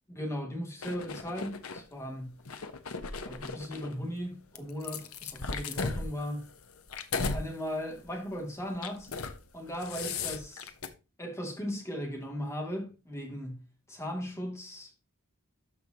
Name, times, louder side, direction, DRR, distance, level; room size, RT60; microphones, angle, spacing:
voice 1, 0.1-2.4 3.2-6.5 7.2-9.1 9.5-10.7 11.2-14.9, equal, 15° left, 2.6 m, -37 dB
sound 1, 0.8-1.8 2.4-3.9 4.6-7.4 7.9-8.1 8.7-9.4 9.7-10.9, left 4 dB, 90° left, 1.1 m, -36 dB
13.0 x 5.3 x 3.0 m
head